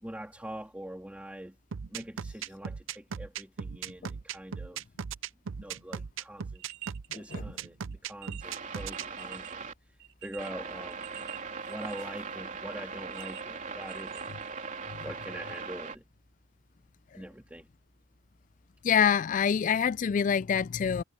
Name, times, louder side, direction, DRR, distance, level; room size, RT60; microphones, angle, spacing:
voice 1, 0.0-1.5 1.9-4.8 5.6-6.6 7.1-7.8 8.0-9.6 10.2-11.3 11.7-14.3 15.0-16.0 17.1-17.7, right 1 dB, 5° right, 3.0 m, -43 dB
sound 1, 1.7-9.0, right 6 dB, 75° right, 0.6 m, -37 dB
sound 2, 6.4-7.4 7.8-7.9 8.2-9.6 10.0-12.2 13.1-14.9 15.5-15.6, right 16 dB, 60° right, 2.4 m, -48 dB
voice 2, 7.1-7.4 18.8-21.0, left 7 dB, 40° left, 0.3 m, -26 dB
sound 3, 8.4-9.7 10.4-16.0, right 5 dB, 40° right, 3.8 m, -40 dB
head